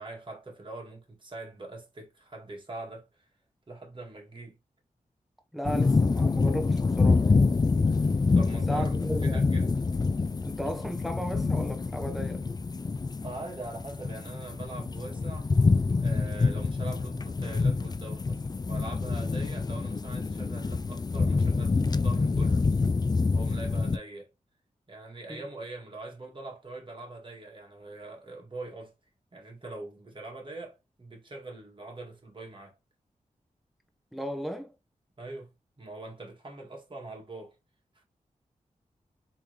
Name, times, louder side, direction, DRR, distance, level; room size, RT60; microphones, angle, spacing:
voice 1, 0.0-3.2 3.7-4.6 8.3-9.8 13.2-15.5 16.0-22.7 23.3-24.3 24.9-28.9 29.3-32.8 35.2-37.6 37.9-38.0, right 2 dB, 35° right, 1.7 m, -43 dB
voice 2, 5.5-7.4 8.7-9.5 10.4-12.5 25.3-25.4 34.1-34.7, equal, ahead, 1.2 m, -35 dB
sound 1, 5.6-24.0, left 4 dB, 30° left, 0.4 m, -26 dB
3.5 x 3.2 x 3.1 m
cardioid pair, 45°, 14 cm